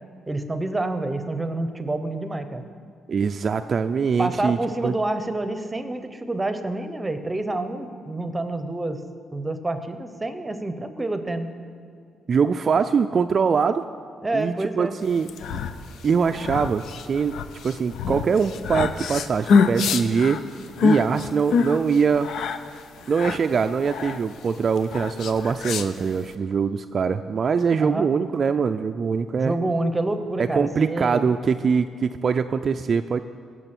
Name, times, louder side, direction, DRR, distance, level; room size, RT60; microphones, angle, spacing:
voice 1, 0.3-2.6 4.2-9.0 9.3-11.5 14.2-14.9 27.8-28.1 29.4-31.3, right 2 dB, 15° right, 9 dB, 0.9 m, -28 dB
voice 2, 3.1-4.6 4.8-4.9 12.3-13.8 14.3-15.6 16.0-20.4 20.8-22.3 23.1-29.6 30.4-33.2, right 6 dB, 45° right, 8 dB, 0.3 m, -23 dB
sound 1, 15.1-26.3, left 5 dB, 75° left, 0.6 m, -26 dB
17.0 x 6.3 x 6.1 m, 2.2 s
cardioid pair, 90°, 0 cm